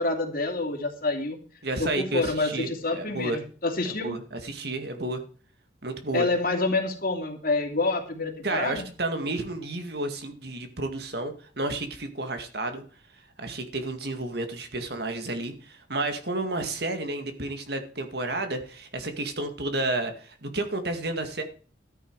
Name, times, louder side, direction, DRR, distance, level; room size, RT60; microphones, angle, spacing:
voice 1, 0.0-1.4 1.8-4.2 6.1-8.9, left 2 dB, 50° left, 4 dB, 2.7 m, -27 dB
voice 2, 1.6-3.4 3.8-5.2 5.8-6.3 8.4-12.8 13.4-21.4, right 2 dB, 55° right, 7 dB, 2.1 m, -31 dB
13.0 x 9.7 x 4.7 m, 0.42 s
head